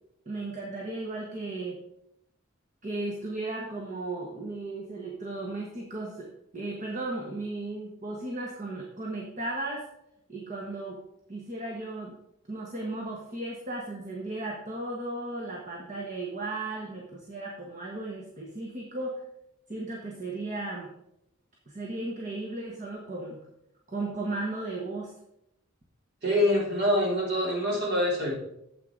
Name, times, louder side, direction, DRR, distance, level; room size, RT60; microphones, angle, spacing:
voice 1, 0.2-1.8 2.8-9.9 10.3-11.0 11.3-12.2 12.5-19.2 19.7-20.9 21.7-23.4 23.9-25.1, right 2 dB, 40° right, -1 dB, 1.3 m, -35 dB
voice 2, 26.2-28.3, left 1 dB, 55° right, -3 dB, 3.3 m, -25 dB
9.1 x 7.7 x 3.9 m, 0.78 s
head